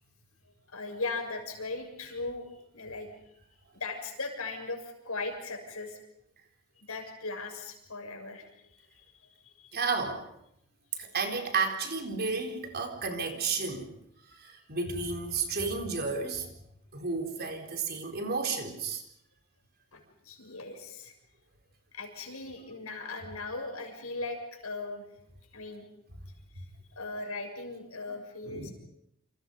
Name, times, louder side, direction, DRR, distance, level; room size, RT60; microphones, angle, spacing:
voice 1, 0.7-3.1 3.7-6.0 6.8-9.8 19.9-21.1 21.9-25.1 25.5-25.9 26.5-26.7 27.0-28.7, left 3 dB, 75° left, 4 dB, 6.9 m, -38 dB
voice 2, 9.7-10.3 11.0-13.9 14.3-16.5 16.9-19.0 28.5-28.7, right 4 dB, 50° right, 4 dB, 4.2 m, -32 dB
29.5 x 27.0 x 5.5 m, 0.78 s
head